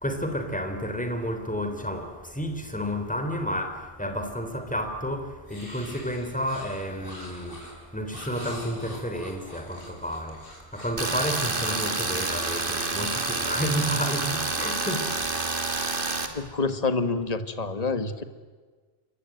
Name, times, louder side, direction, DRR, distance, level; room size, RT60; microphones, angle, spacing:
voice 1, 0.0-15.8, equal, 5° left, 3.4 m, -31 dB
sound 1, 5.5-11.1 13.1-14.3, left 1 dB, 55° left, 6.0 m, -45 dB
Tools, 11.0-16.3, right 3 dB, 55° right, 2.6 m, -28 dB
voice 2, 16.3-18.2, left 3 dB, 40° left, 1.7 m, -27 dB
28.0 x 23.5 x 9.2 m
omnidirectional pair, 1.1 m